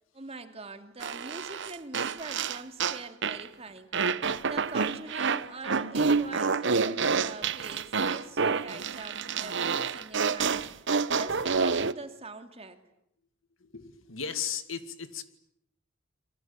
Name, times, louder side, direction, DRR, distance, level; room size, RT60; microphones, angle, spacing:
voice 1, 0.1-3.9 4.4-10.6 11.1-12.8, right 3 dB, 30° right, 7 dB, 2.7 m, -43 dB
sound 1, 1.0-3.5 3.9-11.9, right 5 dB, 65° right, 1.0 m, -28 dB
voice 2, 13.6-15.2, left 7 dB, 80° left, 10 dB, 2.2 m, -36 dB
28.5 x 23.5 x 8.7 m, 0.76 s
head